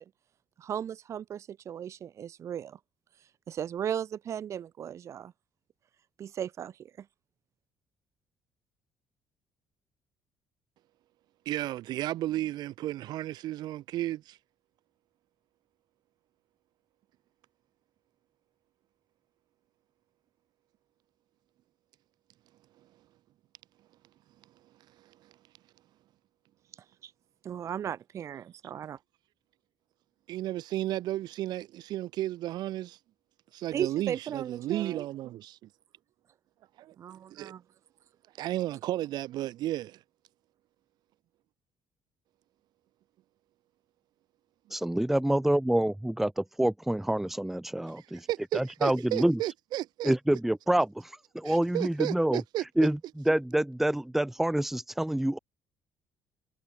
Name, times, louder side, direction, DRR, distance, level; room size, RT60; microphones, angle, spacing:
voice 1, 0.6-2.8 3.5-5.3 6.2-6.9 27.0-27.1 27.4-29.0 33.7-35.0 37.0-37.6, right 9 dB, 40° right, 1.9 m, -36 dB
voice 2, 11.4-14.4 30.3-33.0 33.5-35.7 36.8-36.9 37.3-37.5 38.4-40.0 48.3-50.1 51.4-52.6, right 14 dB, 65° right, 3.3 m, -33 dB
voice 3, 44.7-48.3 48.5-49.4 50.0-52.4 52.8-55.4, right 1 dB, 5° right, 1.3 m, -27 dB
cardioid pair, 170°, 8 cm